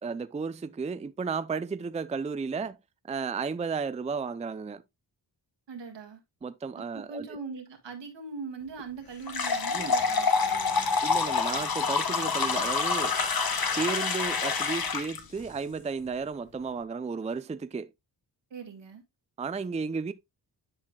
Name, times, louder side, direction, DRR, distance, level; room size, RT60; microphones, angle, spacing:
voice 1, 0.0-2.8 3.1-4.8 6.4-7.3 9.7-9.9 11.0-13.2 13.8-17.9 19.4-20.1, right 5 dB, 15° right, 0.4 m, -33 dB
voice 2, 5.7-6.2 6.8-11.0 18.5-19.0, right 4 dB, 80° right, 1.8 m, -41 dB
sound 1, 9.3-15.2, left 5 dB, 55° left, 1.2 m, -27 dB
10.5 x 4.8 x 2.3 m
cardioid pair, 60°, 43 cm